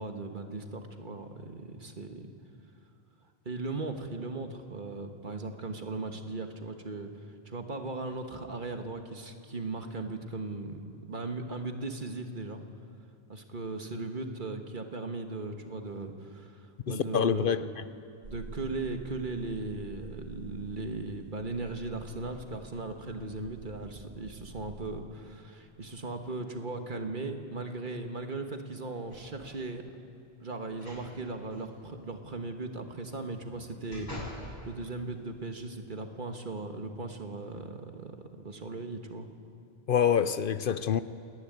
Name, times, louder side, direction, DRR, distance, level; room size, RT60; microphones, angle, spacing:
voice 1, 0.0-2.3 3.4-12.6 13.3-17.7 18.2-29.8 30.4-38.1 38.4-39.3, right 3 dB, 50° right, 5 dB, 1.6 m, -38 dB
voice 2, 16.9-17.6 39.9-41.0, left 8 dB, 60° left, 13 dB, 0.8 m, -26 dB
sound 1, 18.2-25.0, right 3 dB, 85° right, 2.3 m, -48 dB
sound 2, 29.1-29.6 30.7-31.1 31.5-31.6 33.2-34.5 35.0-35.1, equal, 45° left, 7.8 m, -44 dB
29.0 x 11.5 x 9.5 m, 2.5 s
omnidirectional pair, 1.0 m